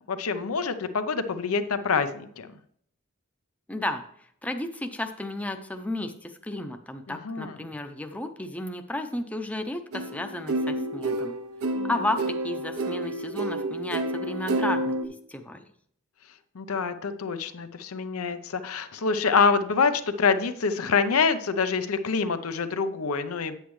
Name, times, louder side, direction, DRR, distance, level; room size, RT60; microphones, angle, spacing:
voice 1, 0.1-2.5 7.1-7.5 11.8-11.9 16.5-23.6, left 5 dB, 90° left, 10 dB, 0.7 m, -26 dB
voice 2, 3.7-4.0 4.4-11.4 11.8-14.9 15.3-15.6, left 1 dB, 5° left, 6 dB, 0.6 m, -33 dB
sound 1, 9.9-15.1, right 1 dB, 85° right, 0.6 m, -29 dB
8.3 x 8.1 x 3.1 m, 0.67 s
head